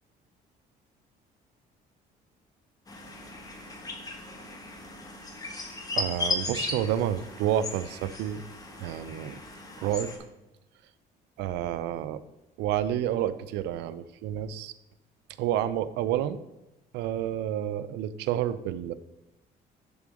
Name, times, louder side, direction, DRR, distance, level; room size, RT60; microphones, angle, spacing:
sound 1, 2.9-10.2, left 3 dB, 20° left, 1.3 m, -36 dB
voice 1, 5.9-8.4 8.8-9.4 9.8-10.1 11.4-12.2 12.6-14.7 15.4-16.4 16.9-18.9, right 11 dB, 90° right, 14 dB, 0.5 m, -29 dB
7.1 x 3.8 x 6.3 m, 0.94 s
cardioid pair, 110°, 17 cm